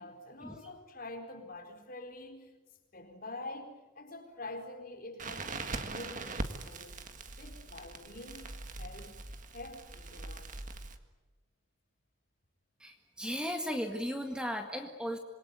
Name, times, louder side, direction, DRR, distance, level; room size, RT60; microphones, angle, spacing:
voice 1, 0.0-2.6 2.9-7.0 7.3-9.2 9.5-10.5, left 2 dB, 45° left, 3 dB, 4.4 m, -46 dB
Crackle, 5.2-11.0, right 3 dB, 40° right, 1.8 m, -42 dB
voice 2, 12.8-15.2, equal, 5° right, 4 dB, 1.9 m, -36 dB
27.5 x 22.0 x 9.5 m, 1.1 s
head